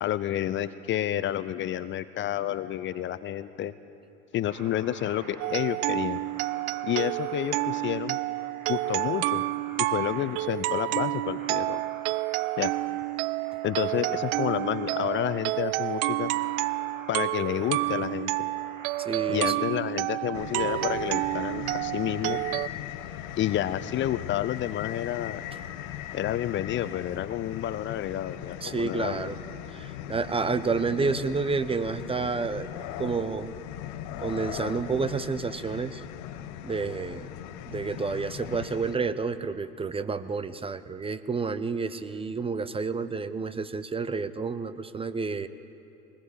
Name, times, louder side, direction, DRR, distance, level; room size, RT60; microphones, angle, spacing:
voice 1, 0.0-3.7 4.3-6.2 6.8-8.2 8.7-9.4 9.8-11.8 12.6-12.7 13.6-16.3 17.1-18.3 19.3-22.4 23.4-25.4 26.1-29.3, left 12 dB, 30° left, 14 dB, 0.7 m, -30 dB
sound 1, 4.5-19.5, right 3 dB, 85° right, 2.5 m, -47 dB
sound 2, 5.4-22.7, right 19 dB, 40° right, 0.5 m, -29 dB
voice 2, 19.0-19.5 28.6-29.4 29.7-32.7 33.0-33.6 34.2-36.0 36.6-37.3 37.7-45.5, right 4 dB, 15° right, 12 dB, 0.8 m, -30 dB
sound 3, 20.3-39.0, left 11 dB, 45° left, 1.2 m, -39 dB
23.0 x 20.0 x 8.2 m, 2.7 s
figure-of-eight pair, 75°, 41 cm